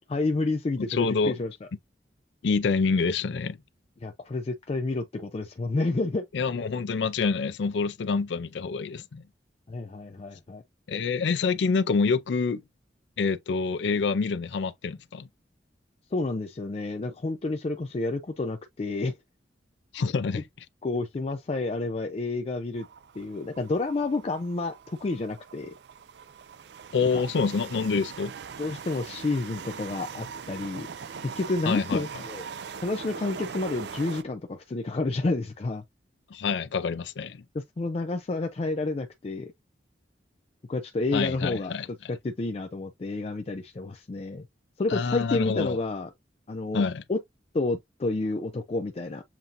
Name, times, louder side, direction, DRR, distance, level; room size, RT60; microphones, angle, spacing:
voice 1, 0.1-1.5 4.0-6.2 9.7-10.6 16.1-19.2 20.8-22.9 23.2-25.7 27.1-27.2 28.6-30.9 31.2-32.5 32.8-35.8 37.5-39.5 40.7-41.8 42.1-44.4 44.8-46.1 46.5-46.8 47.1-47.2 47.5-49.2, left 3 dB, 35° left, 0.4 m, -30 dB
voice 2, 0.8-1.4 2.4-3.6 6.3-9.2 10.9-12.6 13.2-15.3 19.9-20.4 26.9-28.3 31.7-32.1 36.3-37.4 41.1-41.9 44.9-45.8 46.7-47.0, left 4 dB, 90° left, 0.5 m, -27 dB
sound 1, 22.7-34.2, right 6 dB, 70° right, 0.4 m, -41 dB
7.3 x 2.6 x 2.6 m
head